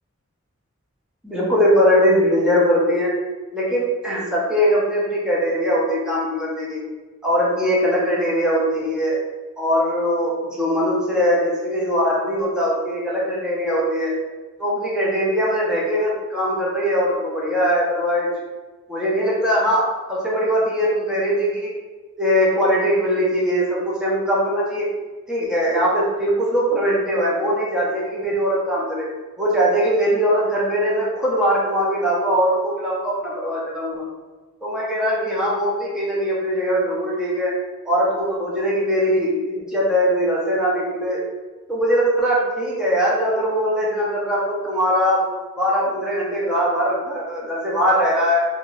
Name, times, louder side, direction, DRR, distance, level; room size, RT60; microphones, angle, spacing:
voice 1, 1.2-3.2 3.5-6.8 7.2-9.2 9.6-14.1 14.6-18.3 18.9-21.7 22.2-24.9 25.3-29.1 29.4-34.0 34.6-37.5 37.8-41.2 41.7-45.3 45.6-48.4, equal, 5° right, -6 dB, 0.6 m, -21 dB
2.7 x 2.5 x 3.0 m, 1.3 s
head